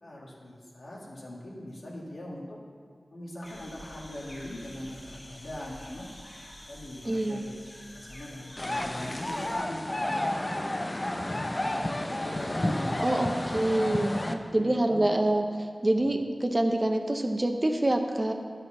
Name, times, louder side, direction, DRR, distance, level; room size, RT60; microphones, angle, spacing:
voice 1, 0.0-2.6 3.1-6.1 6.7-7.5 7.9-10.1 10.4-10.6 11.1-13.9 14.5-15.0 16.0-16.2, left 1 dB, 80° left, -4 dB, 1.9 m, -41 dB
sound 1, 3.4-9.5, equal, 50° left, 1.6 m, -48 dB
voice 2, 7.1-7.5 13.0-15.4 15.8-18.3, right 1 dB, 30° right, 4 dB, 0.8 m, -26 dB
sound 2, 8.6-14.3, left 1 dB, 30° left, 0.7 m, -31 dB
10.5 x 5.7 x 5.7 m, 2.1 s
wide cardioid pair, 50°, 0 cm